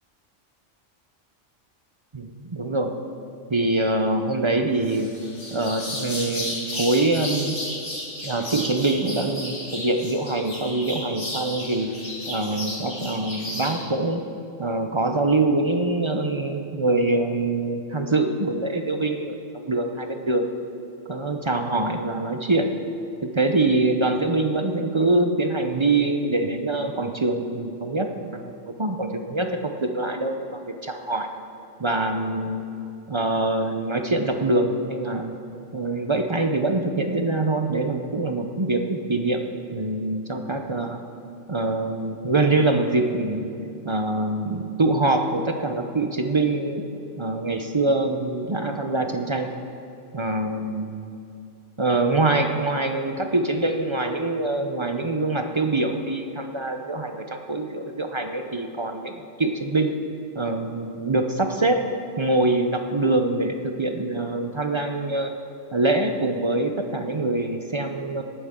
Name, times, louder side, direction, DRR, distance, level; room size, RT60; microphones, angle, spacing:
voice 1, 2.1-2.9 3.5-5.2 5.5-7.6 8.2-11.9 12.3-14.2 14.6-19.4 19.6-20.5 21.1-22.7 23.2-31.3 31.8-32.6 33.1-35.3 35.7-39.4 39.7-41.0 41.5-43.5 43.8-46.8 47.2-49.5 50.1-50.9 51.8-59.9 60.4-61.8 62.2-65.3 65.7-68.2, right 2 dB, 30° right, 5 dB, 0.6 m, -24 dB
sound 1, 4.8-13.7, left 1 dB, 70° left, 3.6 m, -33 dB
18.0 x 9.8 x 3.7 m, 2.7 s
omnidirectional pair, 1.2 m